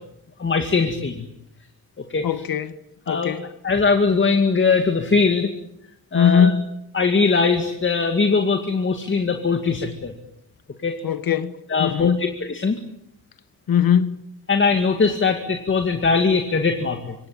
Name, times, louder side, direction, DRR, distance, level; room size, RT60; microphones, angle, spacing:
voice 1, 0.4-1.3 2.1-2.3 3.1-3.3 3.6-5.5 6.1-6.5 6.9-10.1 10.8-11.0 11.7-12.8 14.5-17.1, left 4 dB, 35° left, 2.3 m, -20 dB
voice 2, 2.2-2.8 3.1-3.5 6.1-6.7 11.0-12.3 13.7-14.2, left 8 dB, 75° left, 1.6 m, -20 dB
26.0 x 26.0 x 8.8 m
wide cardioid pair, 180°, 36 cm